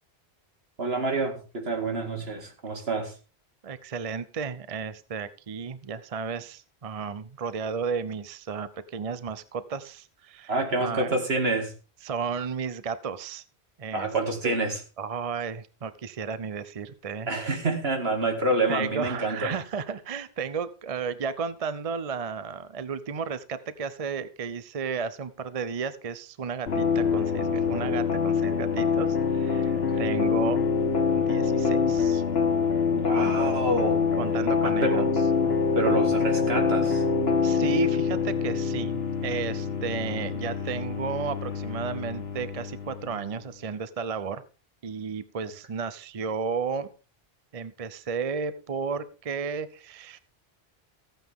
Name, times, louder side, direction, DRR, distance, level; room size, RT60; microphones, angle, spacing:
voice 1, 0.8-3.1 10.5-11.7 13.9-14.8 17.3-19.6 29.7-30.2 32.9-34.1 34.6-35.0 35.7-37.0, right 2 dB, 75° right, 4 dB, 2.5 m, -28 dB
voice 2, 3.6-10.5 10.8-11.1 12.0-13.4 13.8-14.1 14.4-14.6 15.0-17.3 18.7-30.6 31.1-32.2 33.2-33.3 34.2-35.1 37.4-44.4 44.8-46.9 47.5-50.2, right 5 dB, 40° right, 14 dB, 0.6 m, -33 dB
sound 1, 26.7-43.4, left 5 dB, 75° left, 1.7 m, -25 dB
15.0 x 9.0 x 3.6 m, 0.34 s
omnidirectional pair, 1.1 m